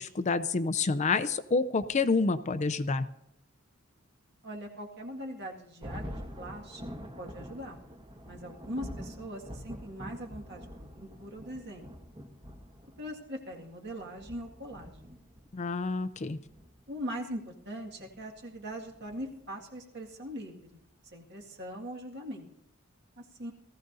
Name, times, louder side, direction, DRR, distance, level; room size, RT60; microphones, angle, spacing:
voice 1, 0.0-3.1 15.5-16.4, left 4 dB, 35° left, 12 dB, 0.5 m, -28 dB
voice 2, 4.4-6.0 6.4-7.8 8.2-11.9 13.0-15.1 16.9-20.8 21.1-22.5 23.2-23.5, equal, 55° right, 0 dB, 2.0 m, -41 dB
Thunder, 5.8-19.8, equal, 25° right, 1.1 m, -46 dB
18.5 x 14.5 x 2.7 m, 0.79 s
head